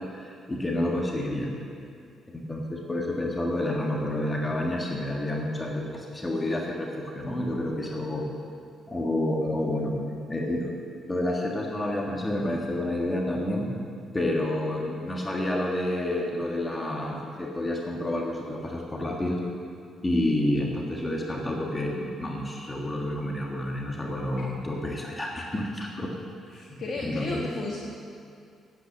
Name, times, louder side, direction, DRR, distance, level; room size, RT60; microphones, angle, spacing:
voice 1, 0.0-1.5 2.3-8.3 8.9-10.0 10.3-13.7 14.1-19.4 20.0-26.1 27.0-27.4, left 1 dB, 20° left, -1 dB, 1.6 m, -29 dB
voice 2, 26.5-27.8, left 3 dB, 55° left, -3 dB, 1.6 m, -33 dB
9.8 x 8.7 x 7.4 m, 2.3 s
cardioid pair, 90°, 0 cm